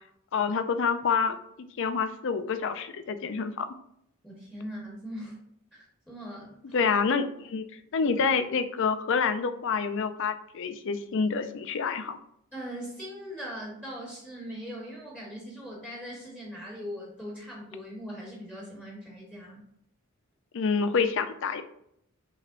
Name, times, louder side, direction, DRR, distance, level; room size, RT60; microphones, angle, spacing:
voice 1, 0.3-1.4 1.8-3.7 6.7-7.6 7.9-12.2 20.5-21.6, left 5 dB, 55° left, 10 dB, 0.4 m, -27 dB
voice 2, 4.2-5.4 5.7-6.7 12.5-19.6, equal, 5° left, -4 dB, 1.1 m, -40 dB
5.6 x 3.1 x 2.5 m, 0.72 s
head